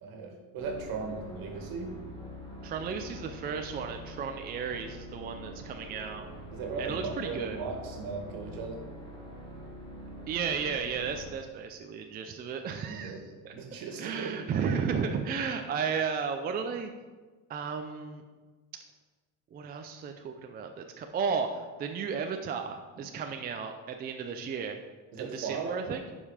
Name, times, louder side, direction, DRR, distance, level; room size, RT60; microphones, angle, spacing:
voice 1, 0.0-2.0 6.5-8.8 12.8-13.2 13.5-14.4 22.9-23.0 25.1-25.8, right 4 dB, 60° right, 3 dB, 1.8 m, -37 dB
sound 1, 0.6-11.3, equal, 10° left, 1.9 m, -45 dB
voice 2, 2.6-6.3 6.8-7.6 10.3-13.2 13.4-13.5 14.0-16.9 17.5-18.2 19.5-24.8 25.2-26.0, right 6 dB, 25° right, 5 dB, 0.4 m, -34 dB
10.0 x 5.5 x 4.9 m, 1.3 s
cardioid pair, 145°, 39 cm